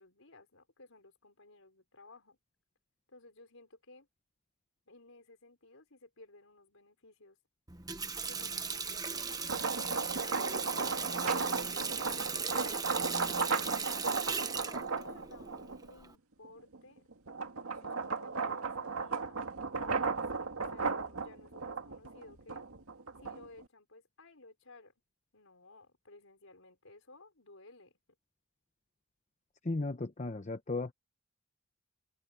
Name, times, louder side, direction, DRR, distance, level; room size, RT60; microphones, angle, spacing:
voice 1, 0.0-2.4 3.1-4.1 4.9-7.4 8.3-12.2 12.8-14.0 14.5-17.1 17.7-19.4 19.7-22.6 23.2-24.9 25.3-28.0, left 2 dB, 70° left, 5.4 m, -57 dB
Water tap faucet, 7.7-16.1, right 5 dB, 20° right, 1.1 m, -38 dB
sound 1, 9.3-15.9 16.4-23.6, right 4 dB, 90° right, 2.0 m, -35 dB
voice 2, 29.6-30.9, left 2 dB, 35° left, 0.8 m, -35 dB
head